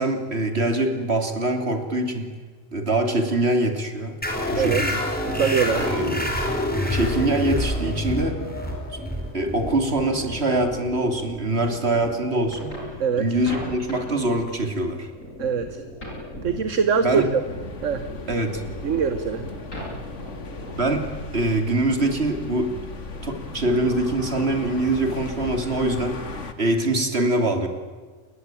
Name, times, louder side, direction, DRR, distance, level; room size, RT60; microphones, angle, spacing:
voice 1, 0.0-2.3 2.7-4.2 4.5-5.0 5.8-6.1 6.9-8.5 8.9-9.0 9.3-12.8 13.2-15.1 17.0-17.3 18.3-18.6 20.8-22.8 23.2-26.2 26.6-27.7, right 2 dB, 55° right, 6 dB, 3.3 m, -24 dB
sound 1, 4.2-11.3, left 1 dB, 5° left, 4.8 m, -27 dB
voice 2, 5.2-5.9 13.0-13.2 15.4-15.8 16.4-17.4 17.8-18.1 18.8-19.5, right 6 dB, 70° right, 10 dB, 1.6 m, -23 dB
sound 2, 5.6-21.0, equal, 80° left, 8.0 m, -38 dB
sound 3, 16.7-26.5, left 3 dB, 65° left, 2.2 m, -37 dB
29.0 x 21.5 x 9.1 m, 1.4 s
omnidirectional pair, 1.3 m